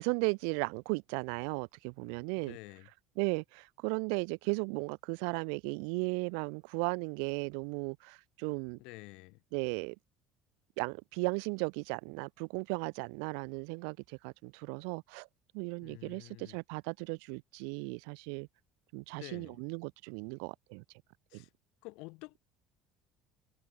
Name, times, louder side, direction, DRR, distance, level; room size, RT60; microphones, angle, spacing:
voice 1, 0.0-2.6 3.2-8.8 9.5-9.9 10.8-15.3 15.5-18.5 18.9-20.8 21.3-21.4, right 40 dB or more, 90° right, 1.0 m, -36 dB
voice 2, 2.4-2.9 8.8-9.4 15.8-16.6 19.2-19.6 21.3-21.5 21.8-22.4, left 26 dB, 70° left, 4.8 m, -49 dB
cardioid pair, 170°, 0 cm